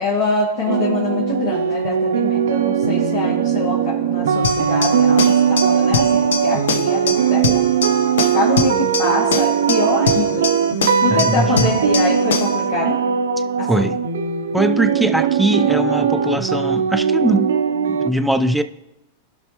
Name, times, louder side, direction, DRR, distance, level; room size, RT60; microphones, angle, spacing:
voice 1, 0.0-7.7 8.3-10.5 10.8-13.0 13.6-13.9, left 3 dB, 70° left, 2.2 m, -24 dB
sound 1, 0.7-18.1, right 7 dB, 90° right, 0.6 m, -19 dB
sound 2, 4.4-12.6, left 5 dB, 85° left, 0.8 m, -24 dB
voice 2, 11.1-11.7 13.7-14.0 14.5-17.5 17.9-18.6, right 1 dB, 5° right, 0.4 m, -20 dB
18.5 x 6.2 x 3.0 m
hypercardioid pair, 115°, 0 cm